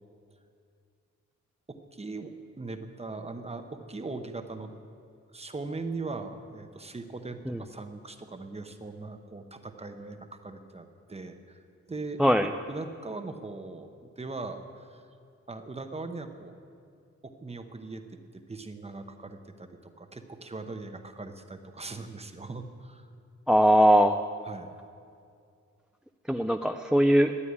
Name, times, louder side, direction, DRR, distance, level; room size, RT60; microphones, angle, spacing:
voice 1, 1.7-4.7 5.3-11.6 11.9-12.2 12.7-15.0 15.5-16.5 17.2-18.0 18.3-23.1 24.4-24.7, right 3 dB, 20° right, 6 dB, 0.9 m, -40 dB
voice 2, 12.2-12.5 23.5-24.2 26.3-27.3, equal, 5° right, 7 dB, 0.3 m, -21 dB
12.5 x 9.8 x 9.7 m, 2.3 s
wide cardioid pair, 155°, 29 cm